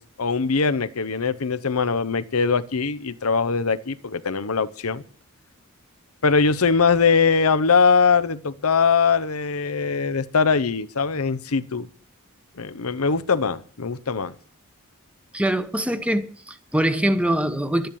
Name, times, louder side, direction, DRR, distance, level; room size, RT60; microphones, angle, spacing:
voice 1, 0.0-5.0 6.2-11.9 12.6-14.3, left 5 dB, 90° left, 0.9 m, -21 dB
voice 2, 15.3-17.9, right 1 dB, 5° right, 1.0 m, -23 dB
12.0 x 10.5 x 7.0 m
head